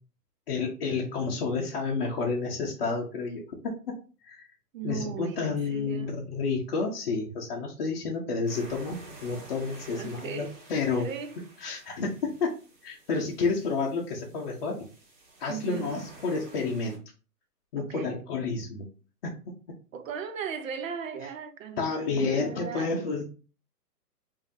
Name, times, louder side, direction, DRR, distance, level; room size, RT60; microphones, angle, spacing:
voice 1, 0.5-4.0 4.2-4.5 4.8-11.1 11.6-12.5 12.8-14.8 15.4-17.0 17.7-18.9 19.2-19.4 21.8-23.2, left 4 dB, 40° left, 0.7 m, -30 dB
voice 2, 4.7-6.2 9.9-10.5 11.0-11.4 15.5-15.9 17.8-18.2 19.9-23.0, right 7 dB, 55° right, 0.7 m, -37 dB
sound 1, 8.5-17.0, right 2 dB, 35° right, 1.8 m, -50 dB
5.0 x 2.7 x 2.6 m
hypercardioid pair, 150°, 48 cm